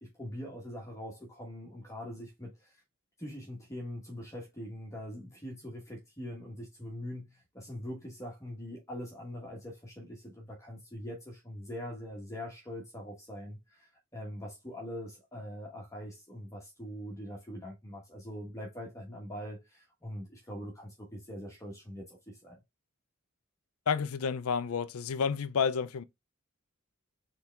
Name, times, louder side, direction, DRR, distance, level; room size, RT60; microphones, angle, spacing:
voice 1, 0.0-2.8 3.2-22.6, equal, 15° left, 1.2 m, -43 dB
voice 2, 23.9-26.0, left 6 dB, 85° left, 0.5 m, -30 dB
4.5 x 3.4 x 3.4 m
head